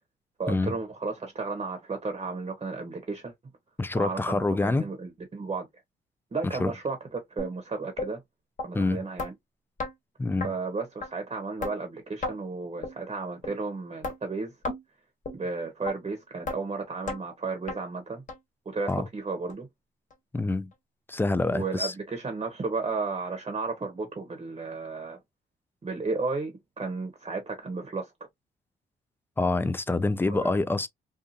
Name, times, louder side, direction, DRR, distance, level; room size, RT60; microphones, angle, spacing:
voice 1, 0.4-3.3 4.0-5.7 6.3-8.2 8.6-9.3 10.4-14.5 15.3-18.2 18.7-19.7 21.5-25.2 25.8-28.1 30.3-30.6, right 4 dB, 30° right, 0.8 m, -33 dB
voice 2, 3.8-4.9 6.4-6.7 8.7-9.0 10.2-10.5 18.9-19.1 20.3-20.7 21.1-21.9 29.4-30.9, left 2 dB, 10° left, 0.3 m, -26 dB
sound 1, 7.4-7.5 8.0-8.1 8.6-8.7 9.2-9.3 9.8-9.9 10.4-10.5 11.0-11.1 11.6-11.7 12.2-12.4 12.8-13.0 13.4-13.5 14.0-14.2 14.6-14.8 15.2-15.4 15.9-16.0 16.5-16.6 17.1-17.2 17.7-17.8 18.3-18.4 18.9-19.0 19.5-19.6 20.1-20.2, left 3 dB, 40° left, 1.1 m, -33 dB
2.6 x 2.4 x 2.5 m
cardioid pair, 90°, 20 cm